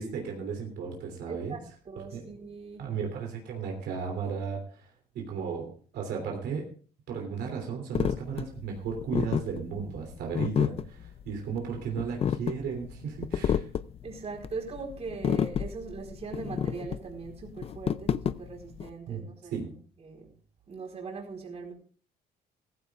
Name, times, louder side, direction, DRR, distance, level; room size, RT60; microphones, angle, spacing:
voice 1, 0.0-1.6 2.1-2.2 2.8-6.7 7.1-13.7 19.1-19.2 19.5-19.7, right 6 dB, 75° right, 1 dB, 3.1 m, -35 dB
voice 2, 1.3-2.9 14.0-20.3 20.7-21.7, right 4 dB, 40° right, 0 dB, 4.3 m, -40 dB
sound 1, 7.9-18.9, left 8 dB, 35° left, 0.5 m, -30 dB
16.0 x 15.0 x 2.4 m, 0.42 s
cardioid pair, 110°, 17 cm